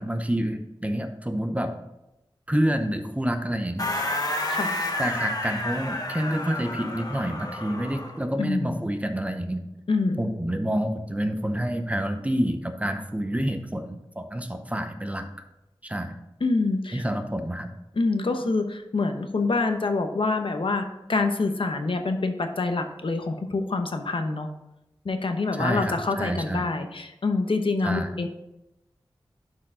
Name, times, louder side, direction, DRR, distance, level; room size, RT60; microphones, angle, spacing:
voice 1, 0.0-1.7 2.5-3.9 5.0-9.6 10.2-15.3 15.8-16.2 16.9-17.7 25.5-26.7 27.8-28.1, equal, 15° right, 7 dB, 0.7 m, -28 dB
sound 1, 3.8-8.2, left 1 dB, 40° left, 1.1 m, -30 dB
voice 2, 8.4-8.8 9.9-10.3 16.4-17.0 18.0-24.5 25.0-28.3, left 3 dB, 70° left, 6 dB, 0.8 m, -26 dB
11.0 x 4.7 x 3.7 m, 0.92 s
wide cardioid pair, 85°, 9 cm